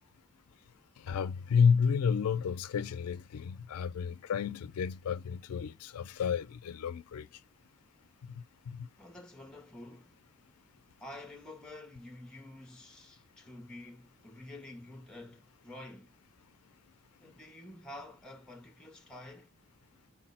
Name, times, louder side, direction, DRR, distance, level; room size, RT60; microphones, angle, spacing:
voice 1, 1.0-7.3 8.4-8.9, left 6 dB, 80° left, 0.4 m, -31 dB
voice 2, 9.0-10.2 11.0-16.1 17.2-19.5, left 1 dB, 5° left, 0.6 m, -49 dB
4.6 x 2.0 x 4.1 m
head